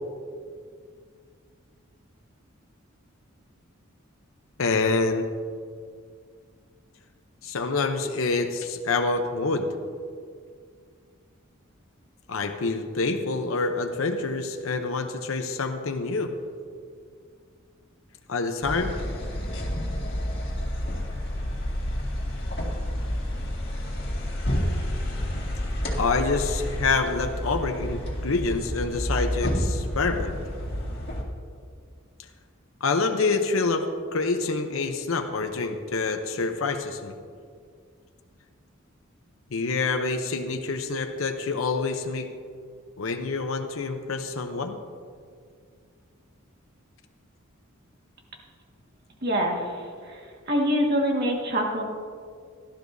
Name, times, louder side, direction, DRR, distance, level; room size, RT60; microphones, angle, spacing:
voice 1, 4.6-5.3 7.4-9.7 12.3-16.3 18.3-19.0 26.0-30.3 32.8-37.1 39.5-42.3 43.0-44.8, left 3 dB, 75° left, 5 dB, 0.8 m, -27 dB
sound 1, 18.6-31.2, equal, 50° left, 2.0 m, -29 dB
voice 2, 49.2-51.8, equal, 50° right, 0 dB, 1.8 m, -25 dB
17.0 x 12.0 x 2.7 m, 2.1 s
head